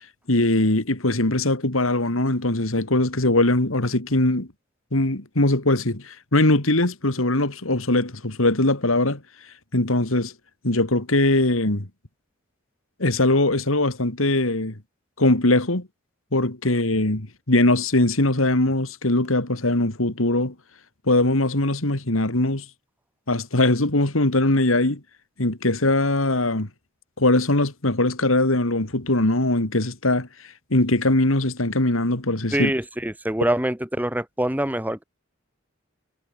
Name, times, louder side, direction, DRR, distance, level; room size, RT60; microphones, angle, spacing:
voice 1, 0.3-4.5 4.9-9.2 9.7-10.3 10.6-11.9 13.0-14.7 15.2-15.9 16.3-20.5 21.1-22.6 23.3-25.0 25.4-26.7 27.2-30.3 30.7-32.7, left 2 dB, 85° left, 3.0 m, -21 dB
voice 2, 32.5-35.0, right 1 dB, 10° right, 1.5 m, -24 dB
head